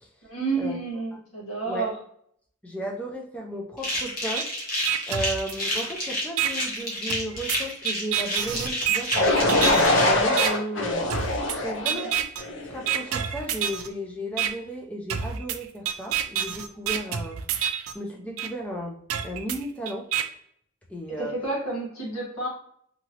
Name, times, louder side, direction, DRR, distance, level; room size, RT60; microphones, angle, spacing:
voice 1, 0.3-2.0 11.8-12.1 21.2-22.5, right 3 dB, 85° left, -4 dB, 1.4 m, -30 dB
voice 2, 2.6-4.5 5.1-11.1 11.6-12.2 12.6-17.4 17.9-19.0 19.2-20.1 20.9-21.3, equal, 5° left, 0 dB, 0.4 m, -34 dB
sound 1, 3.8-10.1, left 1 dB, 40° left, 1.0 m, -30 dB
sound 2, 4.4-4.5 4.9-5.9 6.4-6.5 7.1-9.9 10.4-10.5 11.1-11.6 11.9-12.4 12.9-13.9 14.4-14.5 15.1-17.9 18.4-18.5 19.1-20.2, right 9 dB, 80° right, 0.4 m, -28 dB
sound 3, 9.2-13.0, left 2 dB, 60° left, 0.6 m, -23 dB
2.9 x 2.7 x 2.8 m, 0.68 s
head